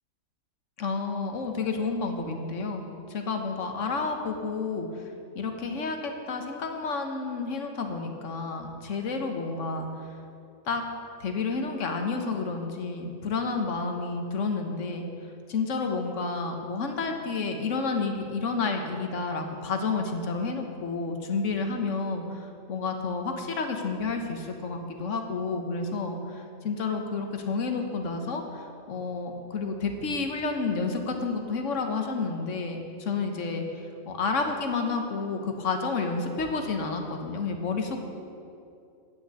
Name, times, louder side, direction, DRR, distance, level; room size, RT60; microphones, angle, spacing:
voice 1, 0.8-10.1 10.6-10.8 11.2-15.1 15.5-38.0, left 4 dB, 65° left, 4 dB, 1.4 m, -30 dB
9.4 x 6.5 x 8.3 m, 2.6 s
omnidirectional pair, 1.4 m